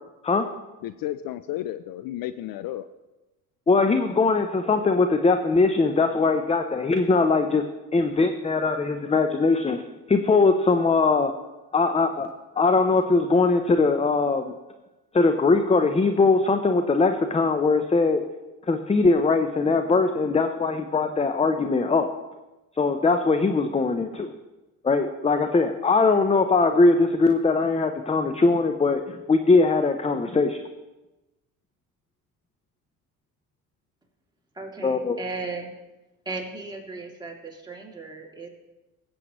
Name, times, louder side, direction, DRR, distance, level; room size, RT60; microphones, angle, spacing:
voice 1, 0.8-2.9, left 13 dB, 55° left, 14 dB, 0.5 m, -32 dB
voice 2, 3.7-7.6 7.9-9.8 10.1-11.3 11.7-12.3 12.6-14.5 15.1-18.2 18.6-22.1 22.7-24.3 24.8-30.6 34.8-35.2, left 3 dB, 15° left, 7 dB, 0.6 m, -21 dB
voice 3, 34.6-35.7 36.3-38.5, right 3 dB, 10° right, -2 dB, 2.7 m, -36 dB
16.5 x 7.9 x 3.1 m, 1.1 s
hypercardioid pair, 70°, 42 cm